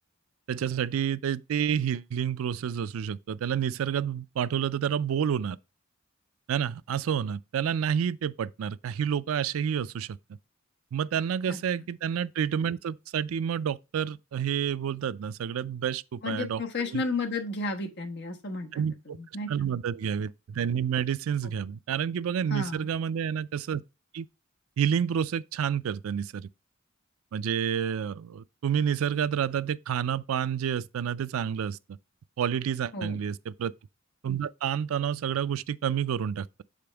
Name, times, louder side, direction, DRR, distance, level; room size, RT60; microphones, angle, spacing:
voice 1, 0.5-5.6 6.5-10.2 10.9-17.0 18.7-19.2 19.5-23.8 24.1-24.3 24.8-26.5 27.3-31.8 32.4-33.7 34.2-36.5, right 8 dB, 80° right, 0.4 m, -29 dB
voice 2, 16.2-18.7 19.1-19.5 22.5-22.9 32.9-33.2, left 3 dB, 55° left, 1.2 m, -32 dB
6.8 x 5.2 x 3.4 m
head